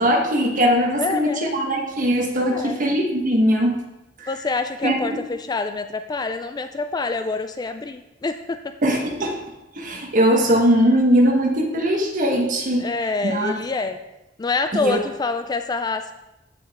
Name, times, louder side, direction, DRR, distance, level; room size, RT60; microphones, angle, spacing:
voice 1, 0.0-3.7 4.2-4.3 4.8-4.9 8.8-9.4 9.8-12.9 13.2-13.5 14.7-15.0, equal, 45° right, 1 dB, 1.4 m, -20 dB
voice 2, 1.0-1.5 2.4-2.9 4.3-8.6 12.8-14.0 14.4-16.1, left 3 dB, 20° left, 8 dB, 0.3 m, -26 dB
14.5 x 5.1 x 3.6 m, 0.97 s
head